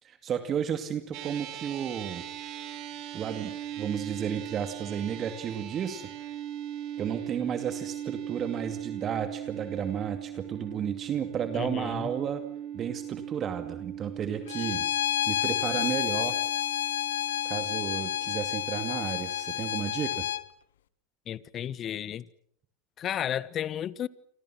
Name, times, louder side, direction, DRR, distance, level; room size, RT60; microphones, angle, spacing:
voice 1, 0.0-2.2 3.1-6.1 7.0-12.4 12.7-14.9 15.3-16.4 17.4-20.3, right 8 dB, 35° right, 2.5 m, -33 dB
sound 1, 1.1-19.7, right 10 dB, 55° right, 4.0 m, -40 dB
voice 2, 11.5-12.1 21.3-22.2 23.0-24.1, left 10 dB, 40° left, 1.3 m, -33 dB
Bowed string instrument, 14.5-20.4, left 12 dB, 80° left, 1.3 m, -30 dB
29.0 x 26.0 x 6.3 m
hypercardioid pair, 95°, 0 cm